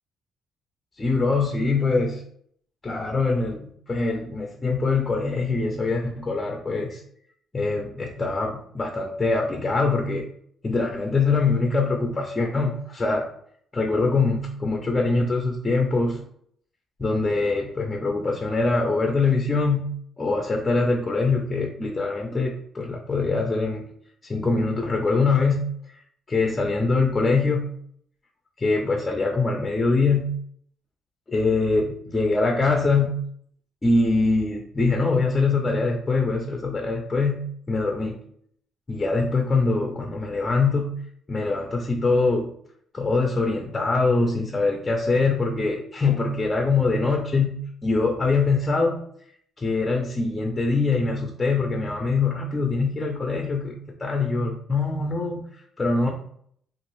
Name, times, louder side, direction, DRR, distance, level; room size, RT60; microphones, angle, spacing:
voice 1, 1.0-2.2 2.8-7.0 7.5-10.3 10.6-13.3 13.7-16.2 17.0-19.9 20.2-23.9 24.2-25.6 25.9-26.0 26.3-27.7 28.6-30.3 31.3-33.1 33.8-37.4 37.7-38.2 38.9-40.9 41.3-42.5 42.9-47.5 47.8-49.0 49.6-55.4 55.8-56.1, left 3 dB, 25° left, 1 dB, 0.5 m, -23 dB
2.9 x 2.5 x 3.1 m, 0.65 s
cardioid pair, 90°, 0 cm